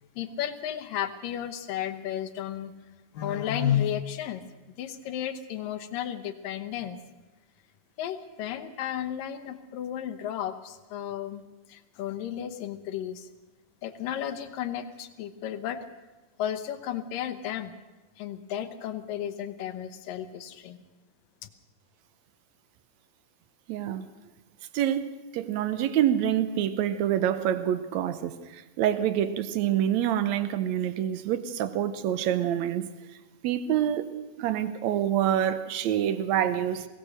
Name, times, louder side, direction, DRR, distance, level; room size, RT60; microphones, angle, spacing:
voice 1, 0.2-2.7 3.1-4.4 4.8-7.0 8.0-11.4 11.7-13.3 13.8-15.8 16.4-17.7 18.2-20.8, left 10 dB, 70° left, 10 dB, 2.5 m, -33 dB
voice 2, 23.7-24.1 24.7-32.9 33.4-34.1 34.4-36.9, right 10 dB, 85° right, 12 dB, 1.6 m, -26 dB
22.5 x 17.5 x 6.5 m, 1.2 s
omnidirectional pair, 4.4 m